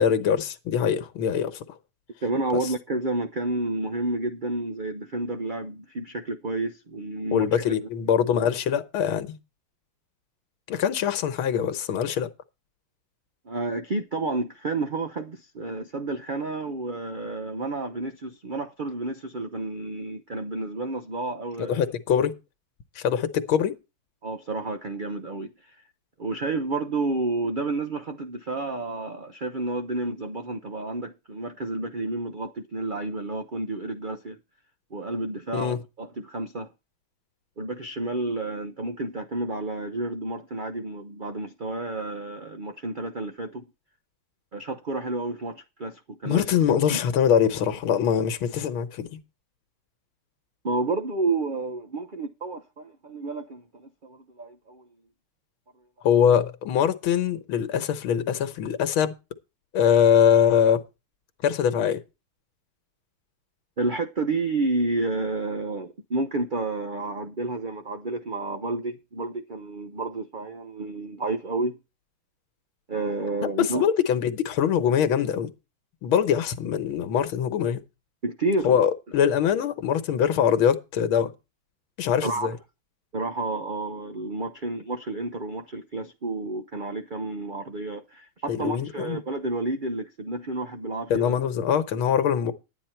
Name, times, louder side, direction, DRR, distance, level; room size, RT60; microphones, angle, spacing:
voice 1, 0.0-1.6 7.3-9.4 10.7-12.3 21.6-22.3 23.0-23.7 35.5-35.8 46.3-49.2 56.0-59.1 59.7-60.8 61.4-62.0 73.4-75.5 76.0-77.8 78.6-81.3 82.0-82.6 88.5-89.2 91.1-92.5, left 8 dB, 85° left, 1.9 m, -23 dB
voice 2, 2.2-7.6 13.4-21.8 24.2-25.7 26.2-34.4 34.9-36.7 37.6-43.6 44.5-47.0 50.6-54.8 63.8-71.8 72.9-73.9 78.2-78.8 82.2-82.5 83.1-91.3, right 2 dB, 55° right, 0.5 m, -30 dB
11.5 x 9.5 x 4.5 m
omnidirectional pair, 2.2 m